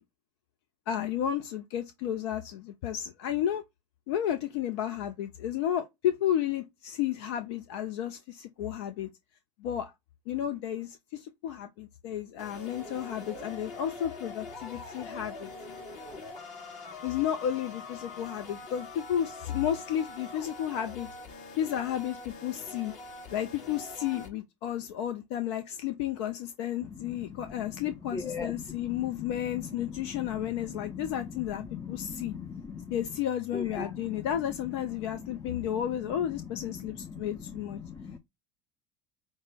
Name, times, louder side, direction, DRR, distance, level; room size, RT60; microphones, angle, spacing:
voice 1, 0.9-3.6 4.1-9.1 9.6-9.9 10.3-15.5 17.0-21.1 21.6-22.9 23.3-32.3 32.9-37.8, left 10 dB, 70° left, 0.5 m, -32 dB
sound 1, 12.4-24.3, left 3 dB, 55° left, 1.6 m, -44 dB
voice 2, 26.8-33.1 33.5-34.3 34.6-35.9 36.2-38.2, left 5 dB, 20° left, 0.5 m, -41 dB
5.3 x 2.0 x 3.3 m
hypercardioid pair, 75°, 15 cm